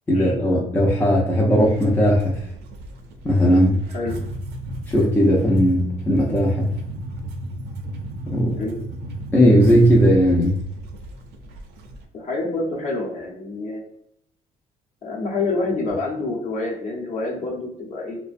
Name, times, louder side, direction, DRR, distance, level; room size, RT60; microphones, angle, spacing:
voice 1, 0.1-2.4 3.2-3.8 4.9-6.7 8.3-8.5 9.3-10.6, equal, 10° left, -3 dB, 0.5 m, -17 dB
sound 1, 1.6-12.0, right 1 dB, 80° right, 0.5 m, -34 dB
voice 2, 12.1-13.8 15.0-18.2, left 3 dB, 50° left, -3 dB, 0.8 m, -27 dB
2.4 x 2.1 x 2.5 m, 0.71 s
cardioid pair, 110°, 17 cm